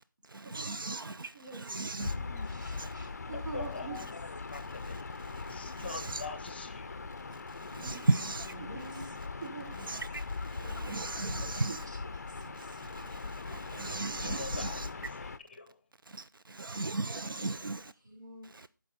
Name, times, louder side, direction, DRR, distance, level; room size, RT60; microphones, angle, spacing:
voice 1, 0.4-2.1 2.8-2.9 5.8-6.2 7.7-8.5 9.8-10.2 10.6-11.9 13.5-14.9 16.5-17.9, right 2 dB, 85° right, 0.5 m, -35 dB
voice 2, 1.3-1.8 2.4-4.0 7.8-8.1 8.6-8.8 9.4-9.9 11.2-12.9 17.0-17.7, right 4 dB, 60° right, 3.3 m, -46 dB
Gull seagull / Ocean, 2.0-15.4, left 4 dB, 50° left, 0.5 m, -40 dB
voice 3, 2.1-2.6 8.4-9.9 18.0-18.5, left 1 dB, 15° right, 2.5 m, -49 dB
voice 4, 3.3-5.1 5.4-7.0 14.2-15.8, left 4 dB, 30° left, 0.8 m, -44 dB
13.5 x 5.4 x 4.1 m
figure-of-eight pair, 165°, 11 cm